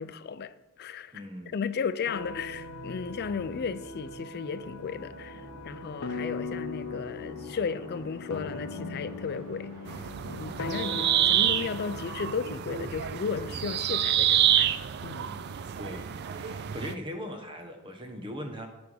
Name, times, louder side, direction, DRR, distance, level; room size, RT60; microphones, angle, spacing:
voice 1, 0.0-1.1 1.5-15.4, left 6 dB, 45° left, 0.4 m, -35 dB
voice 2, 1.1-1.6 15.8-18.7, equal, 25° right, 0.9 m, -40 dB
sound 1, 2.1-12.3, left 3 dB, 75° left, 0.7 m, -40 dB
sound 2, 2.1-13.7, equal, 70° right, 1.5 m, -48 dB
sound 3, 9.9-16.9, right 10 dB, 50° right, 0.3 m, -28 dB
8.5 x 3.5 x 6.2 m
head